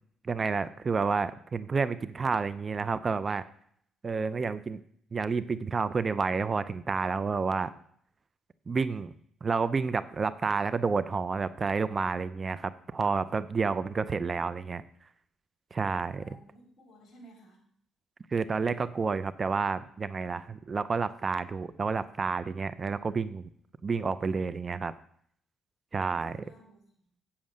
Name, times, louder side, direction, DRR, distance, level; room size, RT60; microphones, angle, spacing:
voice 1, 0.2-3.4 4.0-4.8 5.1-7.7 8.7-9.1 9.4-14.8 15.7-16.2 18.3-23.5 23.8-24.9 25.9-26.4, right 4 dB, 35° right, 15 dB, 0.5 m, -30 dB
voice 2, 16.2-17.6 26.3-27.1, right 1 dB, 50° left, 2 dB, 4.1 m, -55 dB
8.5 x 7.3 x 6.5 m, 0.64 s
cardioid pair, 90°, 0 cm